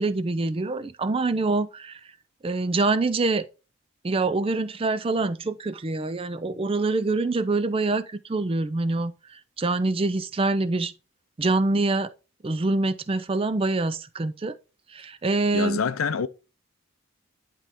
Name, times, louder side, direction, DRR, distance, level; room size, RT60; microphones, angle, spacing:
voice 1, 0.0-2.0 2.4-3.4 4.0-10.9 11.4-12.1 12.4-14.5 14.9-15.8, right 3 dB, 25° right, 0.4 m, -25 dB
voice 2, 15.5-16.3, left 6 dB, 80° left, 0.5 m, -26 dB
10.5 x 3.7 x 3.7 m
head